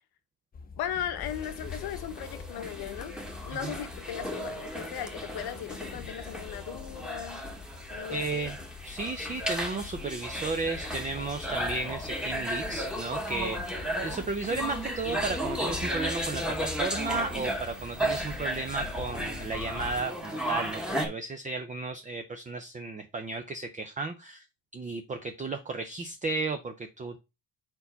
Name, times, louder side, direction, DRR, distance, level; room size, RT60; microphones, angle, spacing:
sound 1, 0.5-20.1, left 5 dB, 25° left, 0.6 m, -44 dB
voice 1, 0.8-3.1 3.4-7.5 7.9-8.5, left 10 dB, 80° left, 1.1 m, -37 dB
sound 2, 1.2-21.1, right 1 dB, ahead, 1.2 m, -35 dB
voice 2, 8.1-8.6 8.8-13.8 14.0-24.4 24.7-27.2, right 3 dB, 20° right, 0.5 m, -34 dB
4.5 x 4.1 x 5.6 m
cardioid pair, 140°, 38 cm